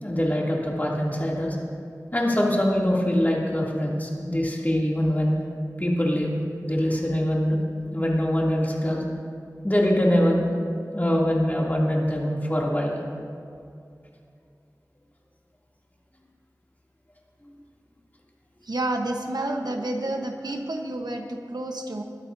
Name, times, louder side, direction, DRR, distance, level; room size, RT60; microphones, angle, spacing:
voice 1, 0.0-1.6 2.1-5.3 5.8-7.6 7.9-9.0 9.6-10.5 10.9-13.0, equal, 25° left, -3 dB, 2.7 m, -23 dB
voice 2, 18.6-22.0, right 1 dB, 90° right, 3 dB, 1.1 m, -29 dB
21.0 x 12.5 x 2.7 m, 2.4 s
wide cardioid pair, 40°, 7 cm